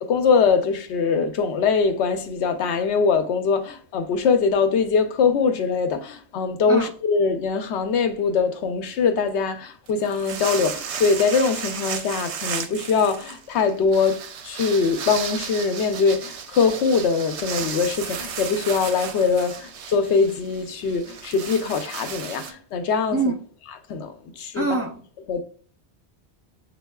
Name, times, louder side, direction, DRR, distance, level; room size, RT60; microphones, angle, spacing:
voice 1, 0.0-14.2 14.4-23.3 23.9-24.7 25.3-25.4, left 5 dB, 80° left, 0.9 m, -22 dB
sound 1, 9.9-22.5, right 7 dB, 80° right, 0.8 m, -34 dB
voice 2, 24.5-25.0, right 3 dB, 20° right, 0.4 m, -24 dB
7.1 x 2.4 x 2.2 m
omnidirectional pair, 1.1 m